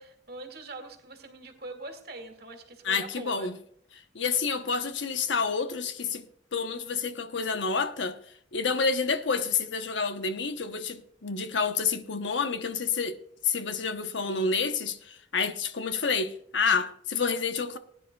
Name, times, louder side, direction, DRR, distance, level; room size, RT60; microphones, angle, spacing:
voice 1, 0.0-3.5, right 2 dB, 55° right, 2.1 m, -43 dB
voice 2, 2.8-3.6 3.9-6.3 6.5-8.2 8.5-13.2 13.4-17.8, left 5 dB, 80° left, 1.0 m, -29 dB
19.5 x 10.0 x 2.3 m
head